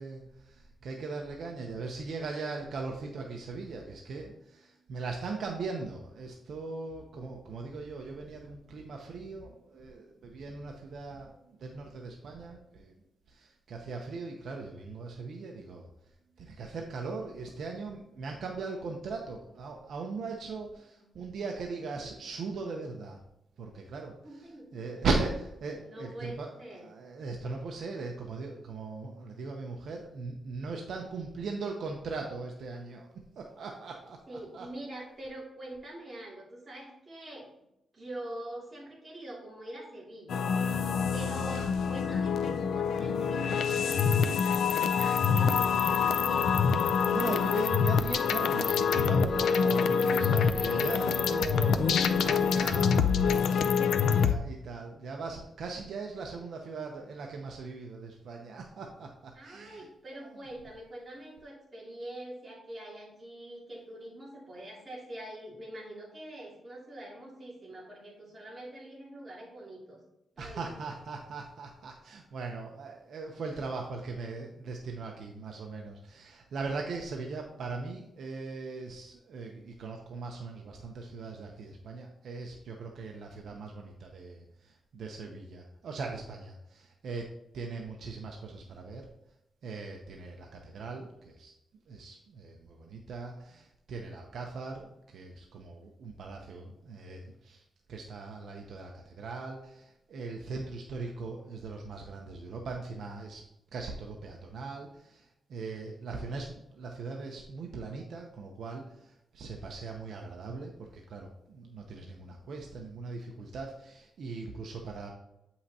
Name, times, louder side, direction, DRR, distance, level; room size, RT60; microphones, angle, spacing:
voice 1, 0.0-12.9 13.3-15.9 16.4-23.2 23.6-24.1 24.7-26.5 26.8-33.1 33.4-34.2 34.5-34.7 47.0-59.9 60.1-60.4 70.4-87.3 87.5-89.0 89.6-91.5 91.9-97.6 97.9-103.4 103.7-115.1, right 4 dB, 60° right, 1 dB, 0.7 m, -39 dB
voice 2, 24.2-25.0 25.7-26.9 34.3-37.5 37.9-46.6 59.3-70.0 70.4-70.8, right 1 dB, 20° right, -6 dB, 2.6 m, -44 dB
sound 1, 40.3-54.4, left 6 dB, 75° left, 0.4 m, -26 dB
8.0 x 5.6 x 2.8 m, 0.84 s
wide cardioid pair, 180°, 0 cm